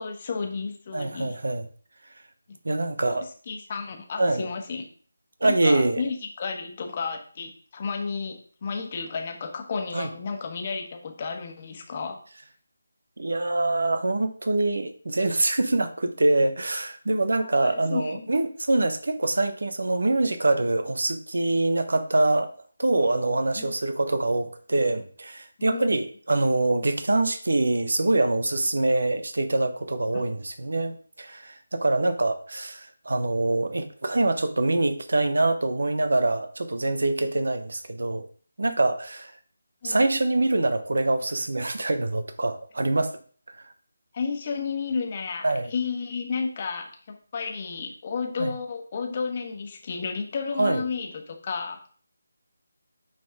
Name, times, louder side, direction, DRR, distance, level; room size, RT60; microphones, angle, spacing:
voice 1, 0.0-1.4 2.5-2.6 3.1-4.9 5.4-12.2 17.3-18.3 23.6-23.7 25.6-25.9 30.1-30.3 39.8-40.1 44.1-52.0, left 5 dB, 35° left, 3 dB, 1.4 m, -32 dB
voice 2, 0.9-1.7 2.6-3.3 4.2-4.5 5.4-6.0 9.9-10.1 13.2-22.5 22.8-38.2 38.6-39.3 39.8-43.1 45.4-45.7 48.4-48.5 50.6-50.8, right 2 dB, 65° right, 9 dB, 1.0 m, -24 dB
8.9 x 4.1 x 3.6 m, 0.44 s
figure-of-eight pair, 160°, 0 cm